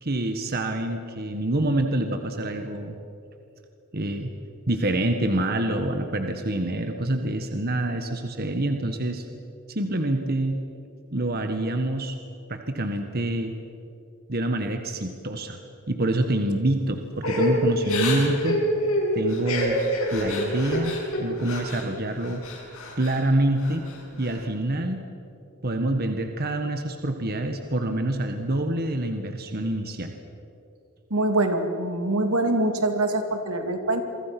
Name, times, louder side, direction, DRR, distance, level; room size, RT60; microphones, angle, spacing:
voice 1, 0.0-2.9 3.9-4.3 4.7-9.2 9.7-10.6 11.1-12.2 12.5-13.5 14.3-15.6 15.9-18.6 19.1-19.8 20.1-22.4 23.0-23.8 24.2-25.1 25.6-30.1, right 1 dB, 45° right, 6 dB, 1.5 m, -26 dB
Crying sobbing / Breathing, 17.2-21.8 22.2-23.2 23.6-24.3, equal, 70° left, 7.3 m, -26 dB
voice 2, 31.1-34.0, right 2 dB, 85° right, 6 dB, 2.6 m, -24 dB
28.0 x 24.0 x 6.0 m, 2.7 s
head